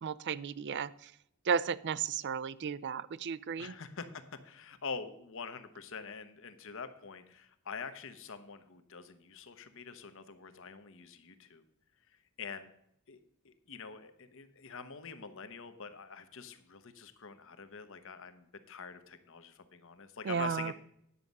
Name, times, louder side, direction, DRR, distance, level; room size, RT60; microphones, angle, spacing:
voice 1, 0.0-1.1 1.4-3.7 20.2-20.7, right 6 dB, 50° right, 19 dB, 0.4 m, -34 dB
voice 2, 3.6-11.6 12.4-12.7 13.1-13.2 13.4-20.7, left 5 dB, 60° left, 10 dB, 1.0 m, -45 dB
9.9 x 7.3 x 5.3 m, 0.75 s
head